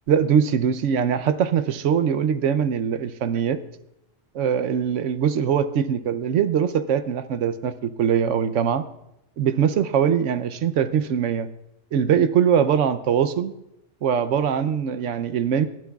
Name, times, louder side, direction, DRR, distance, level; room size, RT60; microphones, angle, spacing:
voice 1, 0.1-3.6 4.3-8.8 9.4-11.5 11.9-13.5 14.0-15.7, right 8 dB, 75° right, 11 dB, 1.0 m, -22 dB
29.5 x 12.0 x 2.3 m, 0.87 s
omnidirectional pair, 1.3 m